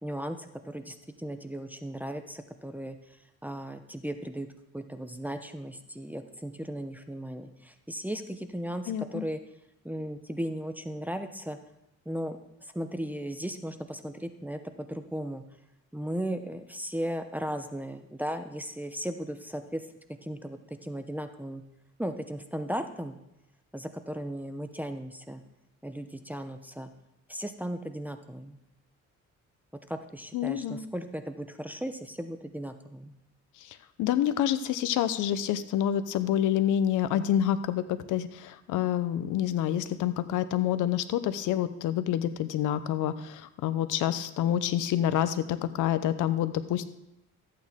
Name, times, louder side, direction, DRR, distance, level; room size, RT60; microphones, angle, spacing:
voice 1, 0.0-4.5 4.7-9.4 9.8-11.6 12.1-15.4 15.9-21.6 22.0-23.2 23.7-25.4 25.8-26.9 27.3-28.6 29.9-33.1, equal, 5° right, 7 dB, 0.8 m, -36 dB
voice 2, 8.9-9.2 30.3-30.9 33.6-46.8, left 11 dB, 90° left, 12 dB, 0.7 m, -28 dB
13.5 x 8.6 x 3.6 m, 0.86 s
cardioid pair, 90°, 30 cm